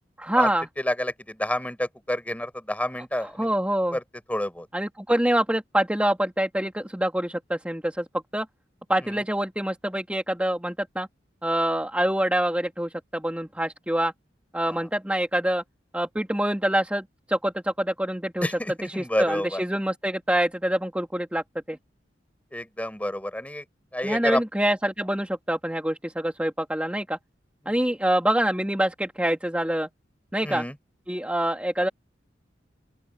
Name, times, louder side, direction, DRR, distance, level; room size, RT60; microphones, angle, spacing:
voice 1, 0.2-0.7 3.2-4.0 4.7-8.1 8.3-8.5 8.9-11.1 11.4-14.1 14.5-15.6 15.9-18.5 18.8-21.8 24.0-27.2 27.7-29.9 30.3-30.6 31.1-31.9, right 1 dB, 10° right, 2.4 m, -26 dB
voice 2, 0.8-3.5 3.9-4.0 4.3-4.7 9.0-9.2 18.4-19.6 22.5-23.6 23.9-24.4 27.7-27.8 30.4-30.7, left 1 dB, 10° left, 5.9 m, -29 dB
open air
head